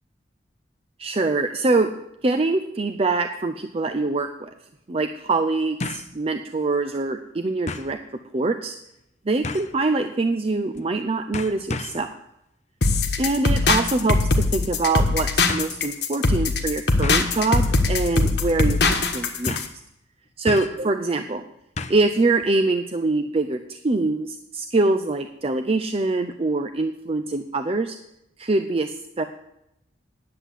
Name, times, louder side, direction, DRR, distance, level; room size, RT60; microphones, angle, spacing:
voice 1, 1.0-1.9 2.2-4.5 4.9-8.0 8.3-8.8 9.3-12.1 13.2-19.6 20.4-21.4 21.9-28.0 28.4-29.2, right 3 dB, 35° right, 7 dB, 0.5 m, -24 dB
sound 1, 3.9-4.0 5.8-6.1 6.6-6.7 7.7-7.9 9.4-9.8 10.7-11.0 11.3-12.1 13.7-14.0 15.0-15.1 15.5-15.7 17.0-17.4 17.9-18.1 18.4-18.5 19.5-19.8 20.5-20.9 21.8-22.1 22.4-22.5, left 3 dB, 40° left, 0.6 m, -33 dB
sound 2, 12.8-19.7, left 3 dB, 65° left, 1.3 m, -21 dB
10.0 x 7.6 x 8.2 m, 0.84 s
head